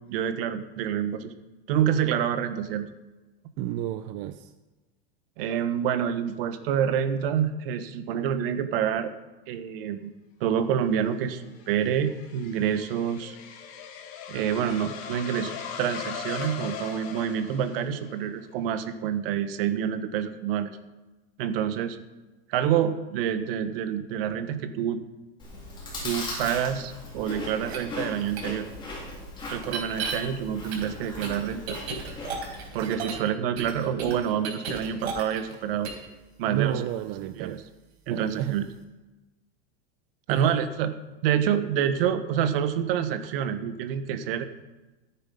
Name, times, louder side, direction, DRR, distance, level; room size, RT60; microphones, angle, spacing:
voice 1, 0.1-1.3 1.7-2.9 5.4-9.1 9.5-10.1 10.4-13.4 14.3-20.7 21.4-22.0 22.5-25.0 26.0-28.7 29.5-31.8 32.7-35.9 36.4-36.8 37.4-37.6 38.1-38.6 40.3-40.9 41.2-44.5, right 9 dB, 65° right, 10 dB, 1.4 m, -27 dB
voice 2, 3.6-4.5 16.6-16.7 36.5-37.6 38.1-38.6 40.3-40.6, right 12 dB, 40° right, 10 dB, 0.6 m, -31 dB
sound 1, 11.1-18.2, left 8 dB, 50° left, 2.0 m, -39 dB
Chewing mastication, 25.4-32.7, left 2 dB, 15° left, 3.7 m, -38 dB
sound 2, 27.6-27.8 28.4-28.5 29.6-30.1 30.7-33.3 33.6-35.5 35.8-36.0, right 5 dB, 90° right, 4.5 m, -34 dB
14.5 x 9.1 x 5.5 m, 1.1 s
supercardioid pair, 160°, 31 cm